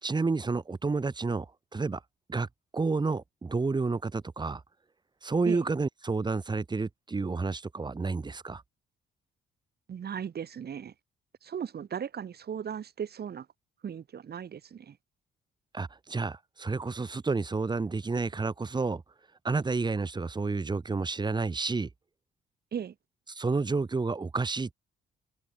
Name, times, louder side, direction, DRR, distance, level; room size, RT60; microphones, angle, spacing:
voice 1, 0.0-2.0 2.3-2.5 2.7-4.6 5.2-8.6 15.7-19.0 19.4-21.9 23.3-24.7, right 4 dB, 20° right, 1.2 m, -30 dB
voice 2, 9.9-10.9 11.4-13.5 13.8-15.0 22.7-22.9, right 8 dB, 55° right, 4.0 m, -37 dB
cardioid pair, 90°, 20 cm